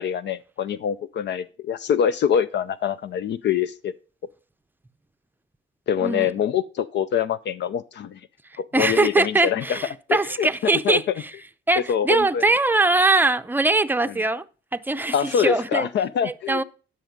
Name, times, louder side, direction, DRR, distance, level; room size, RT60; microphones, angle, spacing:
voice 1, 0.0-3.9 5.9-8.2 8.6-9.8 10.1-11.1 11.8-12.4 14.0-14.1 15.1-16.6, left 8 dB, 60° left, 0.5 m, -25 dB
voice 2, 8.7-11.0 11.7-14.4 14.7-15.9 16.2-16.6, right 2 dB, 10° right, 0.6 m, -21 dB
10.5 x 6.3 x 5.1 m
cardioid pair, 90°, 20 cm